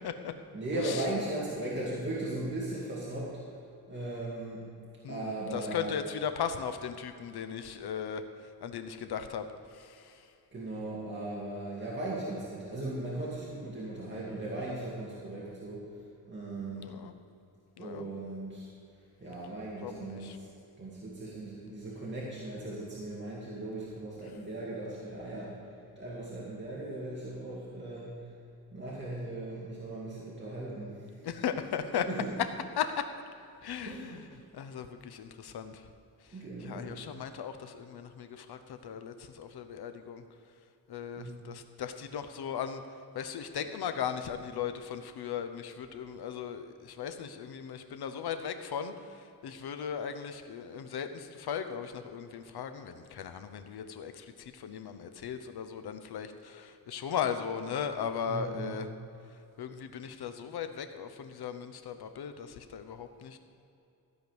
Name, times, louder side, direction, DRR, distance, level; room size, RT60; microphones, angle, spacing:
voice 1, 0.5-3.3 3.9-4.6 5.1-6.0 10.5-15.8 16.3-16.9 17.8-18.7 19.2-20.5 20.8-25.6 25.9-28.1 28.7-31.3 32.0-32.3 33.8-34.3 36.3-37.0 41.2-41.3 58.3-58.8, right 2 dB, 30° right, -7 dB, 2.3 m, -38 dB
voice 2, 5.0-8.2 8.6-9.5 9.7-10.2 16.7-17.1 17.8-18.1 19.8-20.4 31.2-32.1 32.8-33.1 33.6-34.2 34.5-35.9 36.6-40.2 40.9-42.8 43.1-58.9 59.6-63.4, left 7 dB, 90° left, 9 dB, 0.9 m, -37 dB
14.5 x 5.2 x 7.9 m, 2.7 s
cardioid pair, 95°, 37 cm